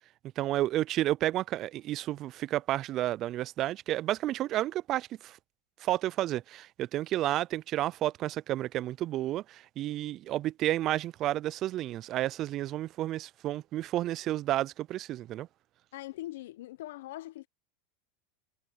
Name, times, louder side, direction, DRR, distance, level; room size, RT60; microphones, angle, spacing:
voice 1, 0.4-5.4 5.8-15.5, right 14 dB, 45° right, 0.3 m, -31 dB
voice 2, 15.9-17.5, left 16 dB, 75° left, 0.8 m, -41 dB
hypercardioid pair, 110°, 0 cm